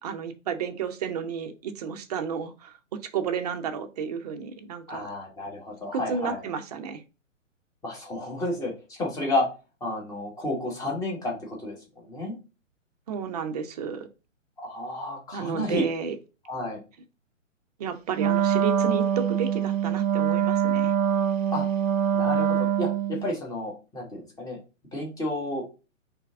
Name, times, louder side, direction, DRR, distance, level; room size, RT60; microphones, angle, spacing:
voice 1, 0.0-2.8 3.0-5.1 5.9-7.0 13.1-14.1 15.3-16.2 17.8-20.9, right 6 dB, 30° right, 8 dB, 0.6 m, -32 dB
voice 2, 4.9-6.4 7.8-9.5 9.8-12.4 14.6-15.8 16.5-16.8 21.5-21.7 22.1-24.6 24.9-25.6, left 1 dB, 10° left, -2 dB, 1.3 m, -31 dB
Wind instrument woodwind instrument, 18.1-23.3, right 9 dB, 75° right, 0.6 m, -24 dB
4.4 x 3.4 x 3.5 m, 0.31 s
figure-of-eight pair, 130°, 39 cm